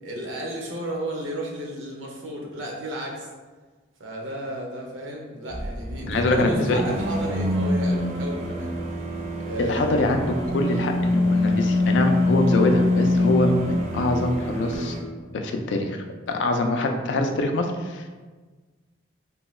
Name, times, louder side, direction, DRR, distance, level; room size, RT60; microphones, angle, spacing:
voice 1, 0.0-3.3 4.0-8.7 9.4-10.0, right 1 dB, 90° right, -1 dB, 0.6 m, -33 dB
sound 1, 5.5-15.0, left 1 dB, 35° right, 0.3 m, -24 dB
voice 2, 6.1-6.8 9.6-15.0 15.3-18.1, left 2 dB, 70° left, 4 dB, 0.3 m, -24 dB
2.6 x 2.2 x 3.1 m, 1.4 s
head